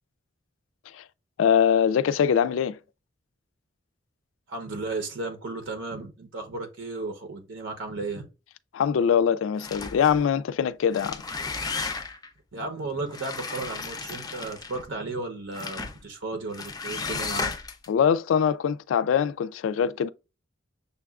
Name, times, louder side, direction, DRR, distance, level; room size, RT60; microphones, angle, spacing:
voice 1, 1.4-2.8 8.7-11.2 17.9-20.1, left 7 dB, 85° left, 0.3 m, -23 dB
voice 2, 4.5-8.2 12.5-17.5, right 3 dB, 75° right, 0.8 m, -34 dB
sound 1, 9.6-10.2 10.8-12.3 13.1-14.9 15.5-16.0 16.5-17.9, left 4 dB, 20° left, 0.4 m, -34 dB
6.7 x 2.3 x 2.4 m
head